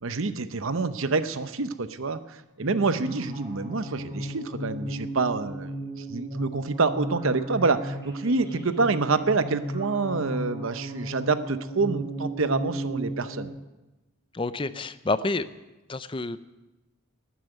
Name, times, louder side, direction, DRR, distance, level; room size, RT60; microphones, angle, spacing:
voice 1, 0.0-5.7 6.0-13.5, right 4 dB, 65° right, 12 dB, 0.8 m, -27 dB
sound 1, 2.6-13.5, right 1 dB, 20° right, 3.8 m, -35 dB
voice 2, 14.3-15.5 15.9-16.4, left 3 dB, 25° left, 14 dB, 0.5 m, -28 dB
12.0 x 9.7 x 8.9 m, 1.1 s
head